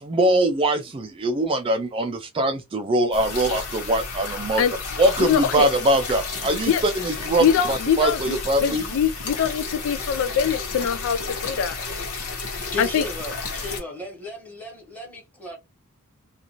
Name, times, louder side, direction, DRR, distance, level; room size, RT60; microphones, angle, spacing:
voice 1, 0.0-4.6 5.0-8.8, right 1 dB, 25° right, 0.3 m, -22 dB
sound 1, 3.1-13.8, left 4 dB, 90° left, 1.1 m, -32 dB
voice 2, 4.3-4.7 5.3-5.7 6.7-6.8 7.4-11.8 12.8-13.0, left 8 dB, 60° left, 0.3 m, -23 dB
voice 3, 12.6-15.6, left 2 dB, 5° left, 1.2 m, -35 dB
2.5 x 2.4 x 2.8 m
head